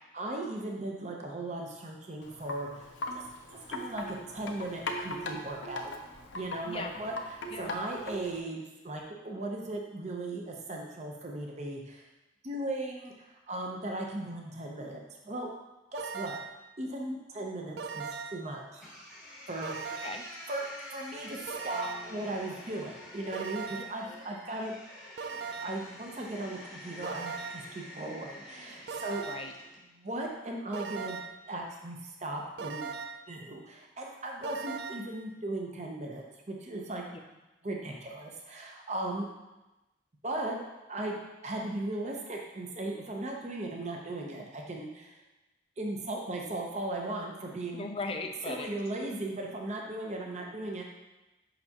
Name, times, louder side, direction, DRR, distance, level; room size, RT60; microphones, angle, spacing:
voice 1, 0.1-3.2 3.5-5.9 6.3-12.1 12.4-15.5 15.9-16.4 16.8-18.8 19.5-20.0 20.5-20.7 20.9-24.8 25.6-29.2 29.9-32.9 33.3-37.0 37.6-39.3 40.2-40.6 40.9-41.2 41.4-45.1 45.8-47.9 48.5-50.8, right 2 dB, 35° right, 0 dB, 0.7 m, -37 dB
Wind chime, 2.2-8.4, left 2 dB, 80° left, 0.7 m, -40 dB
sound 1, 15.9-16.6 17.8-18.5 19.6-20.4 21.5-22.2 23.3-24.1 25.2-25.9 27.0-27.8 28.9-29.6 30.7-31.5 32.6-33.3 34.4-35.2, right 5 dB, 60° right, 0.4 m, -39 dB
sound 2, 18.8-29.8, left 1 dB, 5° right, 1.0 m, -48 dB
voice 2, 47.8-48.7, left 3 dB, 30° left, 4 dB, 0.5 m, -37 dB
6.8 x 5.3 x 2.9 m, 1.0 s
head